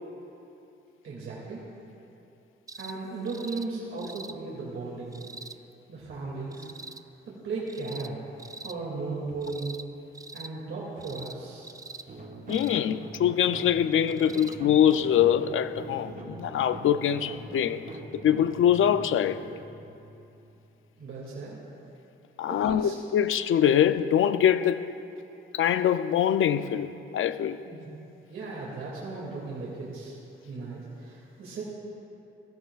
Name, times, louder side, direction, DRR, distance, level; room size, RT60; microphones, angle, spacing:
voice 1, 1.0-1.6 2.8-5.2 5.9-6.7 7.3-8.2 8.6-9.8 10.3-11.7 21.0-21.6 22.5-22.9 27.6-27.9 28.3-30.1 30.4-31.6, right 3 dB, 70° right, 2.4 m, -36 dB
sound 1, 2.7-3.0 3.3-3.7 4.0-4.4 5.1-5.6 6.5-7.0 7.7-8.1 8.4-8.8 9.4-9.9 10.1-10.5 11.0-11.4 11.6-12.1 12.5-12.8 14.1-14.6 14.9-15.0 16.1-16.2, right 3 dB, 15° right, 0.3 m, -44 dB
sound 2, 12.1-20.9, right 2 dB, 40° right, 1.3 m, -43 dB
voice 2, 12.5-17.9 18.1-19.4 22.4-24.9 25.5-27.6, left 9 dB, 70° left, 0.5 m, -24 dB
17.5 x 15.0 x 2.4 m
cardioid pair, 100°, 21 cm